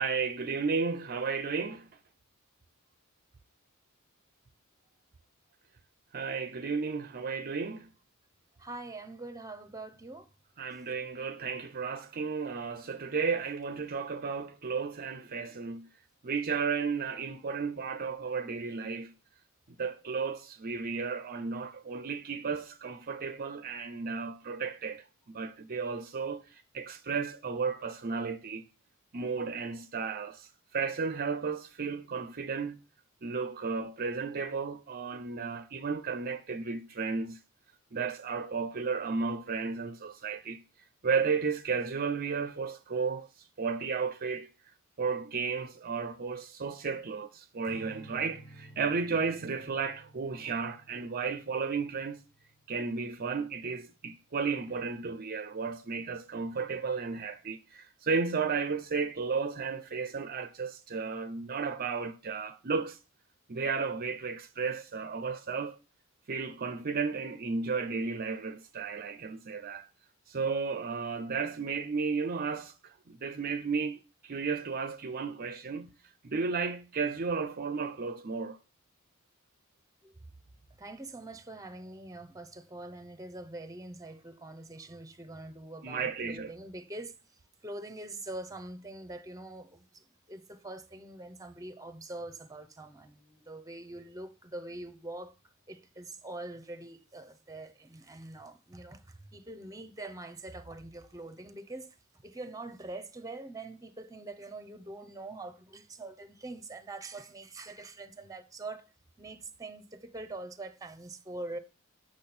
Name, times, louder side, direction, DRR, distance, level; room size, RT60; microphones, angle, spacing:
voice 1, 0.0-1.9 6.1-7.9 10.6-15.9 16.2-19.1 19.8-28.6 29.1-30.5 30.7-32.8 33.2-37.4 37.9-40.6 41.0-43.3 43.6-44.5 45.0-52.2 52.7-63.0 63.5-65.8 66.3-69.9 70.3-75.9 76.2-78.6 85.8-86.5, right 5 dB, 40° right, 0.6 m, -33 dB
voice 2, 8.6-10.3 80.0-80.2 80.8-87.1 87.6-95.3 95.7-102.0 102.2-108.9 109.2-111.6, right 2 dB, 15° right, 0.8 m, -44 dB
Strum, 47.6-54.0, right 1 dB, 30° left, 1.7 m, -54 dB
8.4 x 6.2 x 4.3 m
head